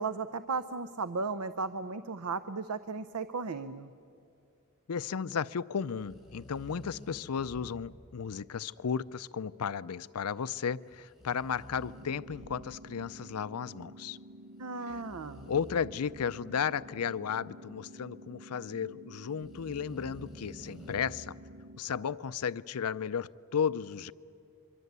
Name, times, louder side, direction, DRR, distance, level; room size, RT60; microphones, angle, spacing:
voice 1, 0.0-3.9 14.6-15.5, right 4 dB, 80° right, 0.7 m, -35 dB
voice 2, 4.9-14.2 14.9-15.0 15.5-21.4 21.8-24.1, left 7 dB, 85° left, 0.5 m, -34 dB
sound 1, 6.0-8.2 10.9-13.0 14.7-16.6 19.3-21.0, equal, ahead, 4.9 m, -51 dB
sound 2, 11.8-21.8, right 1 dB, 60° right, 1.5 m, -51 dB
25.5 x 24.0 x 8.2 m
head